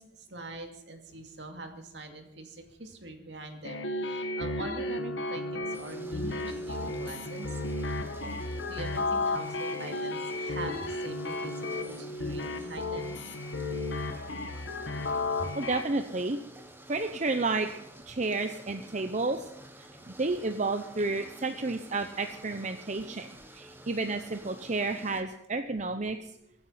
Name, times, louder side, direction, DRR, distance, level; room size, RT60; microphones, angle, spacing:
voice 1, 0.0-7.6 8.2-13.2, right 2 dB, 65° right, 4 dB, 2.5 m, -43 dB
sound 1, 3.6-15.8, left 2 dB, 75° left, 1.6 m, -33 dB
sound 2, 5.7-25.2, right 1 dB, 10° right, 1.4 m, -50 dB
voice 2, 15.5-16.4 16.9-17.8 18.1-19.5 19.8-26.3, right 3 dB, 40° right, 7 dB, 0.8 m, -31 dB
24.0 x 9.5 x 5.7 m, 0.82 s
head